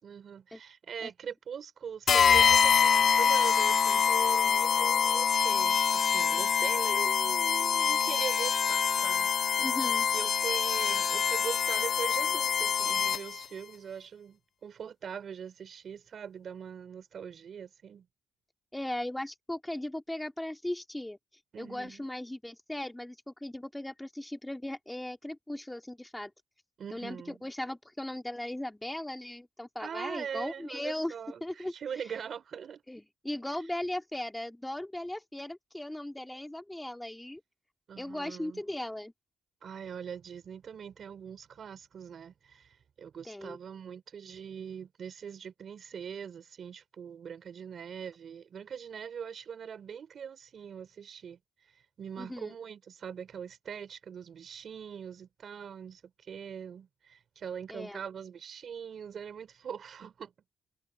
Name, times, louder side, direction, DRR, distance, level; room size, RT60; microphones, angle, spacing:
voice 1, 0.0-9.6 10.1-18.1 21.5-22.0 26.8-27.4 29.8-32.8 37.9-38.6 39.6-51.4 52.0-60.3, right 7 dB, 55° right, 4.1 m, -42 dB
sound 1, 2.1-13.4, left 7 dB, 50° left, 0.4 m, -25 dB
voice 2, 9.6-10.1 18.7-21.2 21.6-26.3 26.9-31.1 31.4-31.7 32.9-37.4 38.0-39.1 43.3-43.6 52.2-52.5 57.7-58.0, left 1 dB, 10° left, 2.3 m, -38 dB
cardioid pair, 90°, 0 cm